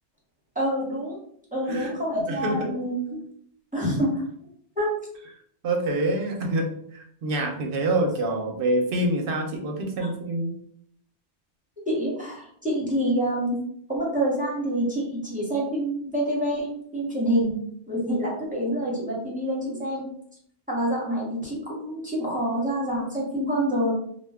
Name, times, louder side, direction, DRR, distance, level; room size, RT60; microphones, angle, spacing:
voice 1, 0.5-1.2 1.5-3.2 3.7-4.2 4.8-4.9 10.0-10.1 11.9-13.6 13.9-16.7 16.9-17.6 17.9-20.0 20.7-23.9, equal, 10° right, -5 dB, 0.9 m, -27 dB
voice 2, 2.3-2.7 5.6-10.5, right 1 dB, 60° right, 3 dB, 0.7 m, -26 dB
2.4 x 2.2 x 3.4 m, 0.66 s
omnidirectional pair, 1.2 m